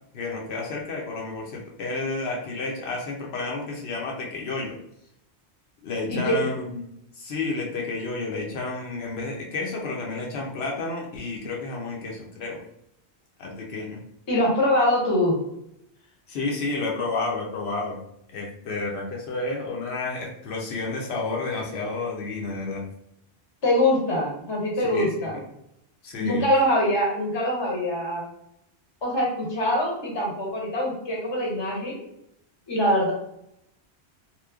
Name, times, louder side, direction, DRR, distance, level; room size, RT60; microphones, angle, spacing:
voice 1, 0.1-4.8 5.8-6.8 7.1-12.6 13.4-14.0 16.3-18.0 18.3-22.9 24.8-25.4 26.0-26.5, left 3 dB, 75° left, -1 dB, 0.8 m, -31 dB
voice 2, 6.1-6.4 14.3-15.4 23.6-25.4 26.2-28.2 29.0-32.0 32.7-33.1, left 1 dB, 30° left, -2 dB, 0.7 m, -23 dB
2.9 x 2.1 x 2.3 m, 0.76 s
omnidirectional pair, 1.1 m